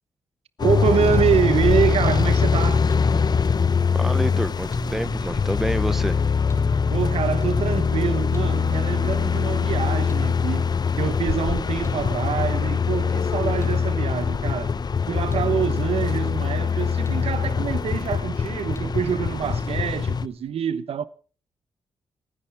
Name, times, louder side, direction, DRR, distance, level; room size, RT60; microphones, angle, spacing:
sound 1, 0.6-20.3, left 6 dB, 40° left, 0.8 m, -23 dB
voice 1, 0.6-2.8 6.9-10.7 11.0-14.8 15.1-21.1, right 8 dB, 75° right, 1.1 m, -26 dB
voice 2, 3.9-6.2, right 1 dB, 5° right, 0.7 m, -28 dB
sound 2, 4.7-20.4, left 1 dB, 25° left, 3.3 m, -35 dB
29.5 x 10.0 x 3.5 m
cardioid pair, 75°, 10 cm